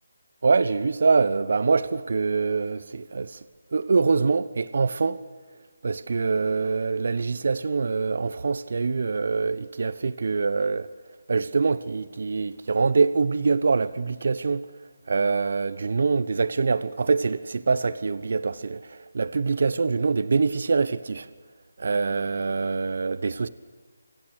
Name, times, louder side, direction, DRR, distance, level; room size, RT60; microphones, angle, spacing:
voice 1, 0.4-3.4 3.7-5.2 5.8-10.9 11.3-14.7 15.1-21.3 21.8-23.5, right 4 dB, 60° right, 1.1 m, -24 dB
29.0 x 26.5 x 6.5 m
figure-of-eight pair, 155°, 0 cm